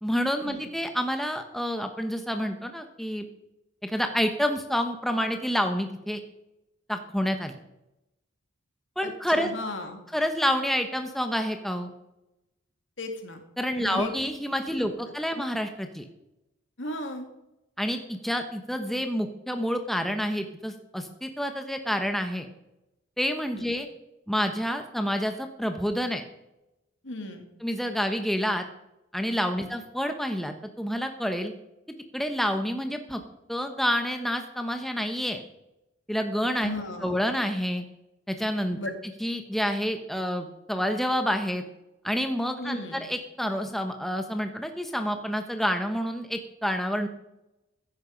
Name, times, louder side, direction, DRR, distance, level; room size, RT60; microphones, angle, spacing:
voice 1, 0.0-3.2 3.8-6.2 6.9-7.5 9.0-9.5 10.1-11.9 13.6-16.1 17.8-22.5 23.2-23.9 24.3-26.2 27.6-28.6 29.1-31.5 32.1-33.2 33.5-35.4 36.1-36.7 37.0-37.8 38.3-38.8 39.2-41.6 42.0-47.1, equal, ahead, 6 dB, 1.0 m, -28 dB
voice 2, 9.0-10.0 13.0-13.4 13.8-14.1 14.7-14.8 16.8-17.3 23.5-23.7 27.0-27.4 36.6-37.2 38.8-38.9 42.6-43.1, left 1 dB, 65° left, 5 dB, 2.4 m, -36 dB
15.0 x 10.5 x 5.2 m, 0.89 s
head